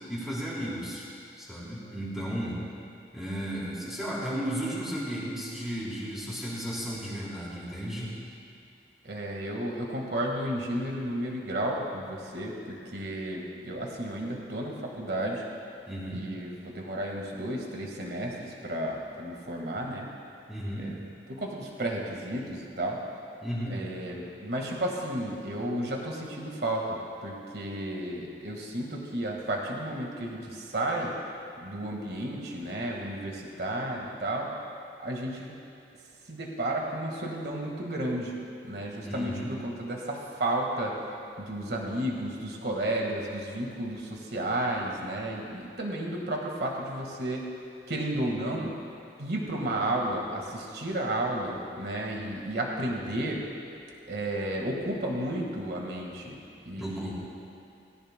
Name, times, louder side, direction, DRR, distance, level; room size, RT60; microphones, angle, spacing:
voice 1, 0.1-1.1 1.4-2.6 3.1-8.1 15.9-16.3 20.5-20.9 23.4-23.8 39.0-39.6 56.8-57.1, equal, ahead, -8 dB, 3.3 m, -34 dB
voice 2, 9.0-15.4 16.1-20.1 20.8-21.0 21.3-23.0 23.7-31.1 31.6-34.5 35.0-35.6 36.3-38.3 38.6-41.0 41.4-47.5 47.9-48.8 49.2-53.4 54.0-57.1, right 1 dB, 65° right, 0 dB, 1.7 m, -32 dB
18.5 x 17.0 x 2.2 m, 2.6 s
head